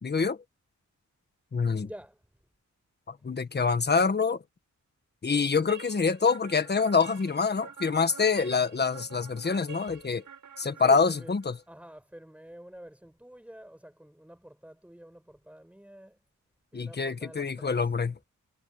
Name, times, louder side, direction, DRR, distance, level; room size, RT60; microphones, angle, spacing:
voice 1, 0.0-0.4 1.5-1.9 3.1-4.4 5.2-10.2 10.6-11.6 16.7-18.1, left 5 dB, 35° left, 1.4 m, -26 dB
voice 2, 1.8-2.2 10.8-11.3 11.7-16.2 16.7-17.9, right 1 dB, 5° right, 6.5 m, -48 dB
sound 1, 5.7-11.6, right 7 dB, 80° right, 6.2 m, -48 dB
wide cardioid pair, 165°, 31 cm